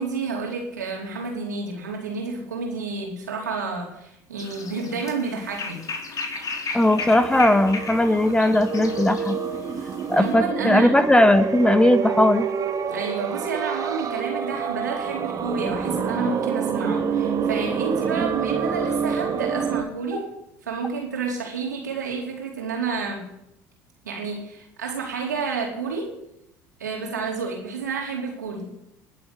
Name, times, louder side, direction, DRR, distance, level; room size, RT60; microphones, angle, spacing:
voice 1, 0.0-5.8 8.7-8.9 9.7-10.9 12.9-20.3 20.6-23.2 24.0-26.1 26.8-28.7, right 4 dB, 85° right, 0 dB, 4.4 m, -30 dB
sound 1, 4.4-10.3, left 4 dB, 40° left, 4.0 m, -35 dB
voice 2, 6.7-9.4 10.1-12.5, left 1 dB, 10° left, 11 dB, 1.5 m, -18 dB
sound 2, 6.8-19.8, right 6 dB, 40° right, 2.1 m, -27 dB
20.5 x 8.3 x 8.5 m, 0.80 s
hypercardioid pair, 65°, 9 cm